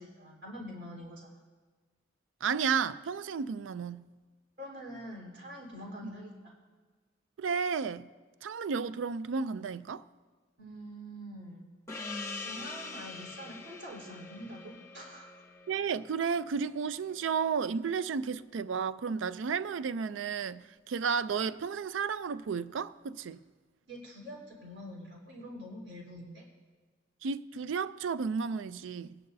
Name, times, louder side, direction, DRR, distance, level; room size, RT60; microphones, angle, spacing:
voice 1, 0.0-1.4 4.6-6.5 10.6-11.7 12.4-15.3 23.9-26.4, equal, 65° right, 3.8 m, -45 dB
voice 2, 2.4-4.1 6.0-6.1 7.4-8.1 8.4-10.0 15.7-23.4 27.2-29.2, right 6 dB, 85° right, 0.4 m, -32 dB
Gong, 11.9-16.9, left 3 dB, 15° left, 0.8 m, -44 dB
22.5 x 10.5 x 2.7 m
head